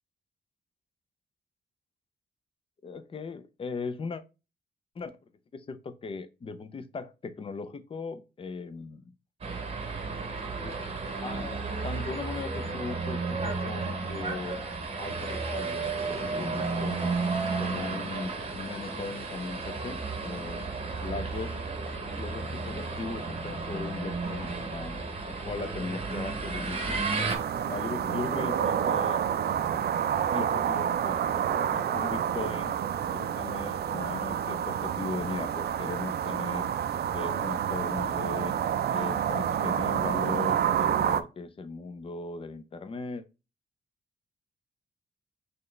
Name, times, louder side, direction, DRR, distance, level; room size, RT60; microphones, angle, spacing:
voice 1, 2.8-4.2 5.0-5.1 5.5-9.1 10.6-10.9 11.2-14.6 15.0-17.1 17.6-20.7 21.0-21.6 22.1-27.0 27.7-29.2 30.3-32.7 33.1-36.7 37.1-38.5 38.9-43.2, left 4 dB, 30° left, 0.4 m, -38 dB
sound 1, 9.4-27.4, right 4 dB, 30° right, 0.9 m, -33 dB
sound 2, 27.3-41.2, right 9 dB, 55° right, 0.4 m, -28 dB
4.2 x 3.2 x 3.1 m
wide cardioid pair, 170°, 20 cm